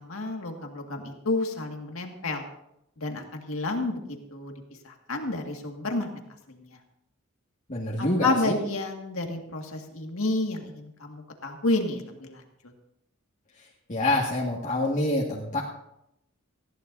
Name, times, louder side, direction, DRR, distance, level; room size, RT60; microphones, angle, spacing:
voice 1, 0.0-2.5 3.0-4.0 4.3-4.5 4.8-6.1 6.5-6.7 8.0-12.4, left 2 dB, 85° left, 3 dB, 2.0 m, -30 dB
voice 2, 7.7-8.6 13.9-15.6, left 1 dB, 35° left, -4 dB, 1.9 m, -26 dB
19.0 x 15.5 x 2.7 m, 0.82 s
head